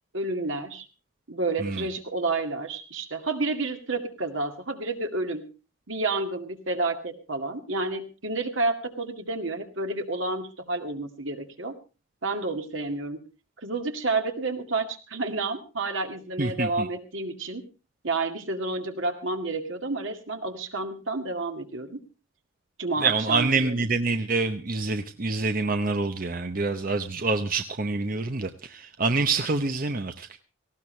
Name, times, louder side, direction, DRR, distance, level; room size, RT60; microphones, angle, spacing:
voice 1, 0.1-0.9 1.3-5.5 5.9-11.7 12.2-13.2 13.6-17.6 18.0-22.0 22.8-23.9, right 3 dB, 75° right, 5 dB, 2.2 m, -30 dB
voice 2, 16.4-16.9 23.0-30.3, right 3 dB, 45° right, 7 dB, 0.8 m, -26 dB
18.5 x 16.0 x 3.2 m, 0.32 s
head